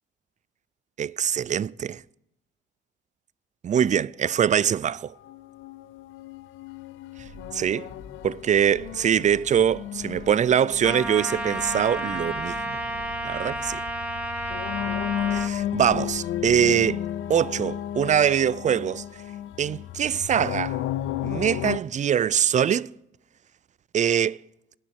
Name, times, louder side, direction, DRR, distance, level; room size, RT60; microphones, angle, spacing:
voice 1, 1.0-2.0 3.6-5.1 7.5-7.9 8.2-12.8 13.2-13.8 15.3-17.0 17.3-19.0 19.6-20.8 21.2-22.9 23.9-24.4, right 8 dB, 40° right, 0.4 m, -23 dB
sound 1, 5.2-21.8, left 12 dB, 80° left, 0.6 m, -34 dB
sound 2, 7.2-16.9, left 1 dB, 55° left, 4.2 m, -48 dB
Trumpet, 10.8-15.5, right 1 dB, 5° right, 2.2 m, -31 dB
17.5 x 10.5 x 4.5 m
cardioid pair, 90°, 20 cm